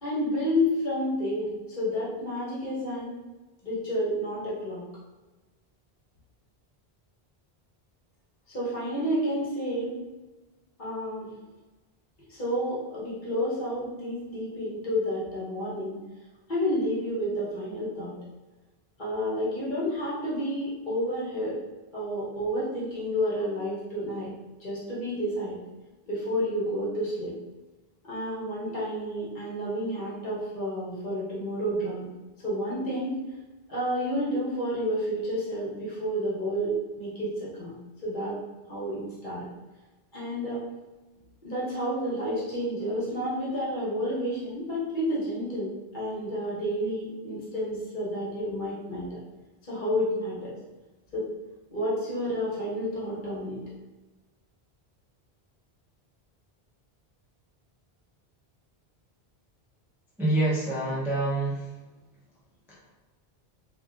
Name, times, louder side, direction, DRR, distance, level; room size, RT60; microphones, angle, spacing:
voice 1, 0.0-3.1 3.6-4.8 8.5-10.0 10.8-11.3 12.3-16.0 16.5-18.1 19.0-21.6 21.9-24.3 24.6-25.6 26.1-27.3 28.0-32.1 32.4-33.2 33.7-37.7 38.0-38.4 38.7-39.4 40.1-40.6 41.4-49.2 49.6-50.5 51.1-51.3 51.7-53.6, equal, 50° left, -7 dB, 1.0 m, -30 dB
voice 2, 60.2-61.6 62.7-62.8, right 2 dB, 5° right, -8 dB, 0.4 m, -26 dB
2.7 x 2.4 x 2.4 m, 1.2 s
omnidirectional pair, 1.1 m